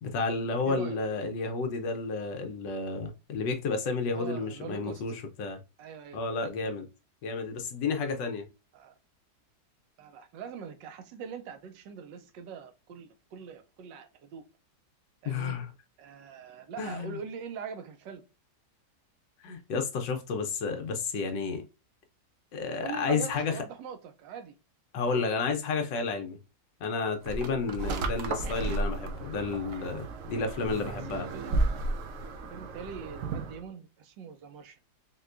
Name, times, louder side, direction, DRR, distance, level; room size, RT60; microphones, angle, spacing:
voice 1, 0.0-5.6 6.1-6.9 7.2-8.5 15.2-15.7 16.8-17.2 19.4-21.6 22.5-23.6 24.9-26.4 26.8-31.3, left 4 dB, 85° left, 1.5 m, -31 dB
voice 2, 0.7-1.0 4.1-5.0 5.8-6.2 8.7-8.9 10.0-14.5 15.2-15.6 16.0-18.2 22.8-24.5 25.1-25.3 30.2-31.6 32.5-34.8, right 6 dB, 85° right, 1.4 m, -43 dB
sound 1, 27.3-33.6, right 2 dB, 70° right, 0.8 m, -33 dB
4.6 x 2.2 x 2.4 m
omnidirectional pair, 1.9 m